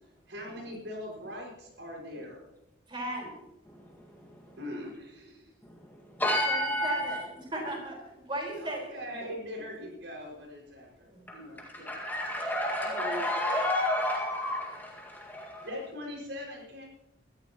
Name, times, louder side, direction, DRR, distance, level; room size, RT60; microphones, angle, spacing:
voice 1, 0.3-2.4 4.6-5.5 8.6-11.1 11.3-11.9 12.8-13.3 15.6-16.8, left 1 dB, 70° right, -1 dB, 5.7 m, -41 dB
voice 2, 2.9-3.3 6.5-9.0 11.1-11.2, right 1 dB, 25° right, -2 dB, 4.7 m, -36 dB
voice 3, 6.2-7.2 11.7-15.7, left 1 dB, 10° left, -2 dB, 1.9 m, -30 dB
22.0 x 13.5 x 3.0 m, 0.87 s
head